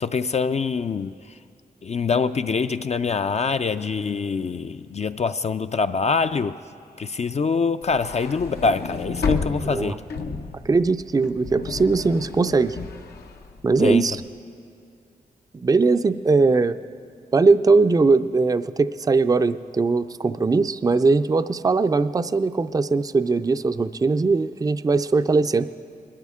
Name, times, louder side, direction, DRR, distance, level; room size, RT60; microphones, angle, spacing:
voice 1, 0.0-1.4 1.8-6.6 7.0-10.0 13.8-14.0, left 5 dB, 45° left, 9 dB, 0.4 m, -24 dB
sound 1, 7.8-14.1, left 4 dB, 85° left, 0.8 m, -32 dB
voice 2, 10.6-12.8 13.6-14.2 15.5-16.8 17.3-25.7, right 3 dB, 25° right, 12 dB, 0.4 m, -20 dB
21.0 x 12.5 x 3.6 m, 2.4 s
cardioid pair, 50°, 16 cm